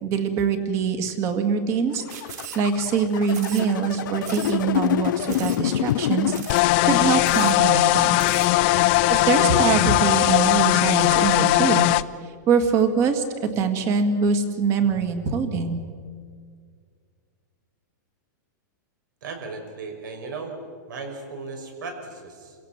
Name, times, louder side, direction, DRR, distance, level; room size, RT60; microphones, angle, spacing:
voice 1, 0.0-2.0 2.3-6.4 6.8-8.2 9.1-11.9 12.5-13.2 13.5-15.8, right 6 dB, 30° right, 8 dB, 2.0 m, -23 dB
sound 1, 1.9-7.2, left 12 dB, 80° left, 0.5 m, -27 dB
sound 2, 2.1-2.9 3.3-3.9 4.2-4.6 4.9-5.0 5.3-5.6 5.9-6.0 6.3-6.7 7.0-7.1 7.2-7.6 8.0-8.5, right 9 dB, 60° right, 2.8 m, -39 dB
sound 3, 6.5-12.0, left 18 dB, 35° left, 0.5 m, -19 dB
voice 2, 19.2-20.6 20.9-22.6, right 4 dB, 75° right, 5 dB, 5.6 m, -36 dB
29.0 x 17.0 x 7.5 m, 2.1 s
supercardioid pair, 170°, 10 cm